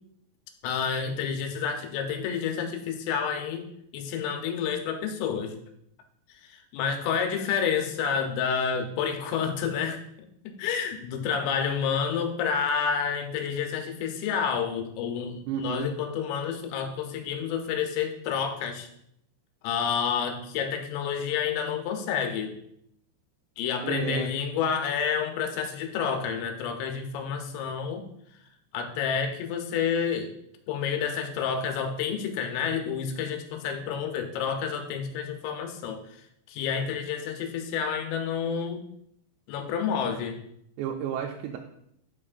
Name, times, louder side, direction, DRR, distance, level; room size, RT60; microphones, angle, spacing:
voice 1, 0.6-3.6 3.9-5.6 6.4-10.0 10.4-18.9 19.6-22.5 23.6-28.0 28.7-30.3 30.7-38.9 39.5-40.4, left 7 dB, 85° left, 5 dB, 3.1 m, -29 dB
voice 2, 15.5-15.9 23.8-24.3 40.8-41.6, right 9 dB, 90° right, 2 dB, 2.8 m, -32 dB
11.0 x 5.2 x 2.5 m, 0.74 s
omnidirectional pair, 4.9 m